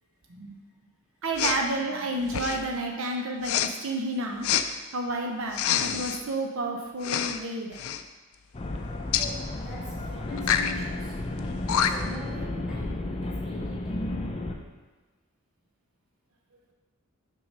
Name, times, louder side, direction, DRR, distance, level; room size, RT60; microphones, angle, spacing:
voice 1, 1.2-4.5 4.9-7.8, right 2 dB, 70° right, 2 dB, 0.6 m, -30 dB
Respiratory sounds, 1.4-1.6 2.3-2.7 3.4-3.7 4.4-4.7 5.5-6.2 7.0-7.4 7.7-8.0 9.1-9.3 10.4-10.7 11.4-11.5 11.7-12.2, left 9 dB, 85° left, 0.4 m, -26 dB
voice 2, 1.9-2.4 9.2-11.2 11.8-14.1, equal, 5° right, -7 dB, 1.8 m, -45 dB
sound 1, 8.5-14.5, left 2 dB, 25° left, 0.5 m, -33 dB
6.1 x 3.8 x 5.2 m, 1.3 s
head